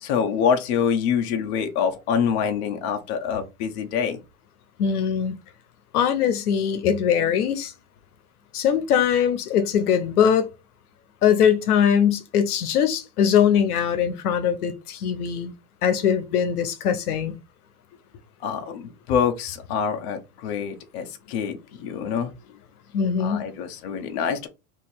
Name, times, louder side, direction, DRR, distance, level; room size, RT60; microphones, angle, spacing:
voice 1, 0.0-4.2 18.4-22.3 23.2-24.5, left 7 dB, 45° left, 0.9 m, -25 dB
voice 2, 4.8-5.4 5.9-7.7 8.5-10.5 11.2-15.5 15.8-17.4 22.9-23.5, left 8 dB, 90° left, 0.9 m, -21 dB
2.9 x 2.8 x 4.3 m
supercardioid pair, 165°, 43 cm